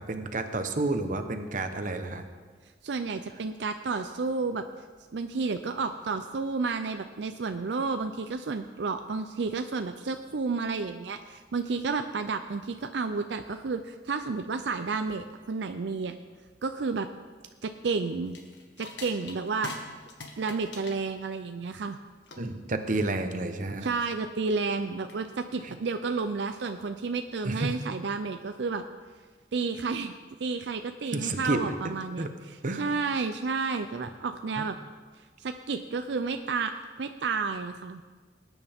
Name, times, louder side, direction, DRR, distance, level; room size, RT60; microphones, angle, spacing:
voice 1, 0.0-2.3 22.4-23.9 25.6-25.7 27.4-27.7 31.1-31.7 32.2-32.3 32.6-32.8 34.6-34.7, right 2 dB, 50° right, 7 dB, 1.0 m, -30 dB
voice 2, 2.8-4.7 5.1-16.1 16.6-17.1 17.6-18.4 18.8-19.7 20.4-22.0 23.8-28.8 29.5-30.1 30.4-32.3 32.8-34.8 35.4-38.0, right 4 dB, 80° right, 8 dB, 0.5 m, -31 dB
sound 1, 18.3-27.3, left 3 dB, 85° left, 1.6 m, -47 dB
20.0 x 9.3 x 3.6 m, 1.5 s
head